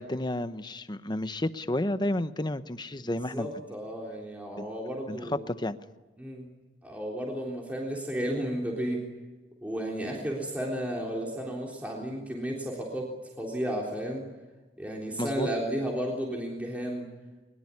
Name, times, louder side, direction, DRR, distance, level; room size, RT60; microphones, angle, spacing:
voice 1, 0.0-3.5 4.6-4.7 5.1-5.2 5.5-5.8 15.2-15.5, left 1 dB, 25° left, 12 dB, 0.9 m, -31 dB
voice 2, 3.0-5.5 6.2-6.5 6.8-9.0 9.6-13.1 13.4-14.2 14.8-17.1, equal, 10° right, -2 dB, 3.6 m, -33 dB
22.0 x 22.0 x 9.8 m, 1.2 s
head